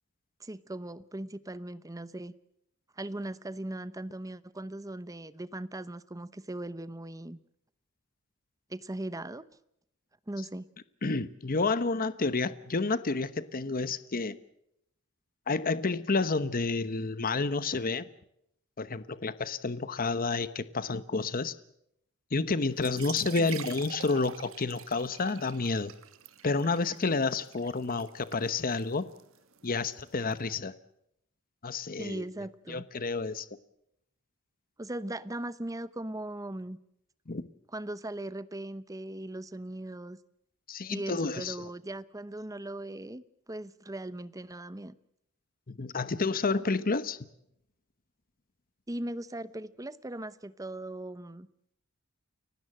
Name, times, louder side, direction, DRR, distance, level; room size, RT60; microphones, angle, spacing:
voice 1, 0.4-2.3 3.0-7.4 8.7-9.5 10.3-10.7 23.4-23.6 32.0-32.8 34.8-36.8 37.7-40.2 40.9-43.2 43.5-45.0 48.9-51.5, right 1 dB, 15° right, 16 dB, 0.8 m, -39 dB
voice 2, 11.0-14.4 15.5-18.0 18.8-21.5 22.3-25.9 26.4-29.0 29.6-30.7 31.6-32.2 32.7-33.5 37.3-37.4 40.7-41.7 45.7-47.2, left 3 dB, 40° left, 14 dB, 1.0 m, -30 dB
sound 1, 22.7-30.3, right 9 dB, 65° right, 1.7 m, -46 dB
30.0 x 16.5 x 7.7 m, 0.76 s
head